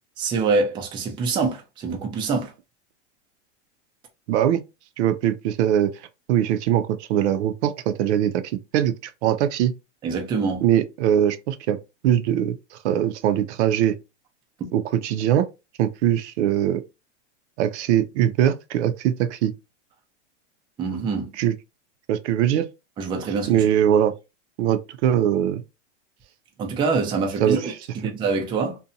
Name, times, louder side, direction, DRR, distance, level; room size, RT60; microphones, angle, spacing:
voice 1, 0.2-2.5 10.0-10.6 20.8-21.3 23.0-23.7 26.6-28.8, right 4 dB, 15° right, 0.3 m, -25 dB
voice 2, 4.3-4.6 5.0-5.9 6.3-8.4 8.7-9.7 10.6-11.8 12.0-14.0 14.7-15.5 15.8-16.8 17.6-19.5 21.4-21.5 22.1-22.7 23.5-24.1 24.6-25.6 27.4-27.6, right 10 dB, 70° right, 0.5 m, -21 dB
2.6 x 2.2 x 2.6 m
supercardioid pair, 130°, 36 cm